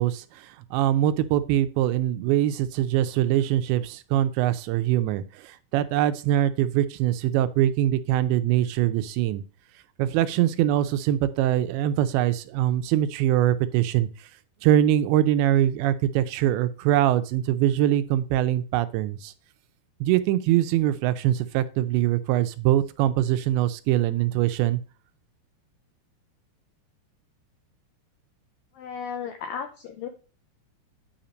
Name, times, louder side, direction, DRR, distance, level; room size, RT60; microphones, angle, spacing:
voice 1, 0.0-9.4 10.0-14.1 14.6-19.3 20.0-24.8, right 12 dB, 85° right, 11 dB, 2.9 m, -23 dB
voice 2, 28.7-30.1, left 7 dB, 90° left, 6 dB, 2.0 m, -34 dB
9.6 x 4.4 x 5.1 m, 0.35 s
omnidirectional pair, 5.1 m